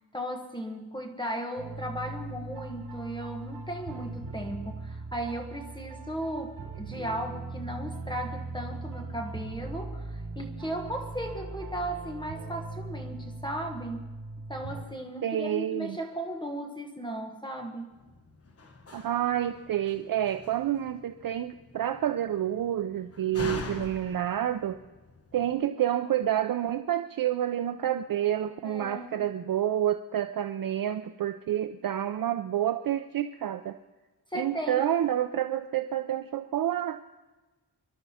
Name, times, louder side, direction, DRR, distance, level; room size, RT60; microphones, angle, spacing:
voice 1, 0.1-14.1 14.5-17.8 28.6-29.2 34.3-34.8, right 1 dB, 10° left, 2 dB, 1.1 m, -36 dB
sound 1, 1.6-14.8, right 3 dB, 80° right, 4.1 m, -40 dB
voice 2, 15.2-16.0 18.9-24.8 25.3-33.8 34.3-37.0, right 11 dB, 55° right, 9 dB, 0.5 m, -29 dB
Slam, 17.9-25.5, left 3 dB, 35° left, 1.2 m, -44 dB
24.5 x 12.0 x 4.2 m, 1.2 s
wide cardioid pair, 180°, 40 cm